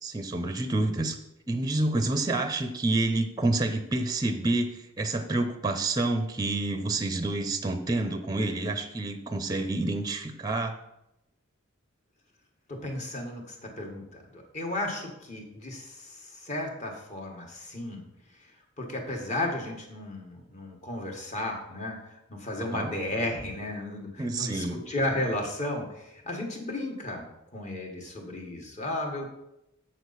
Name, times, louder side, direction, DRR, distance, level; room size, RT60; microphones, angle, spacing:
voice 1, 0.0-1.2 1.5-10.7 22.7-22.9 24.2-24.8, right 2 dB, 20° right, 8 dB, 0.5 m, -28 dB
voice 2, 12.7-18.0 18.3-18.5 18.8-29.3, left 1 dB, 35° left, 1 dB, 1.4 m, -34 dB
7.6 x 6.5 x 4.1 m, 0.85 s
head